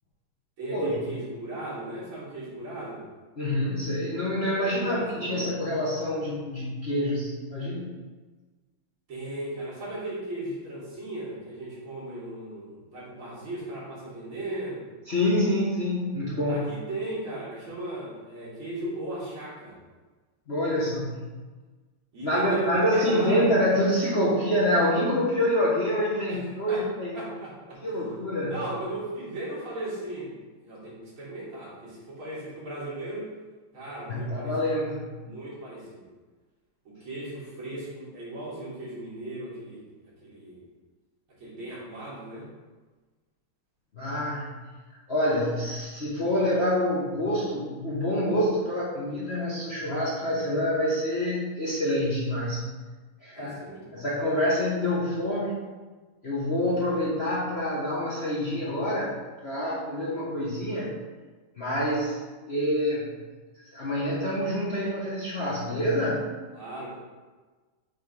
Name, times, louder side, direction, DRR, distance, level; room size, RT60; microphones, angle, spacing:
voice 1, 0.6-3.0 4.5-5.5 9.1-14.8 16.5-19.8 22.1-23.6 26.3-26.9 27.1-27.8 28.5-33.3 33.7-34.6 35.2-36.0 36.8-39.8 40.2-40.6 41.4-42.5 53.3-54.0 56.6-57.0 66.5-67.0, right 1 dB, 75° right, -7 dB, 2.8 m, -37 dB
voice 2, 3.4-7.9 15.1-16.7 20.5-21.3 22.2-27.2 27.8-28.6 34.1-35.1 43.9-44.5 45.1-52.6 53.2-53.6 53.9-55.7 56.2-59.2 59.4-61.0 61.6-62.2 62.4-63.1 63.7-66.2, left 1 dB, 40° left, -7 dB, 1.0 m, -26 dB
6.3 x 3.6 x 5.1 m, 1.3 s
omnidirectional pair, 2.3 m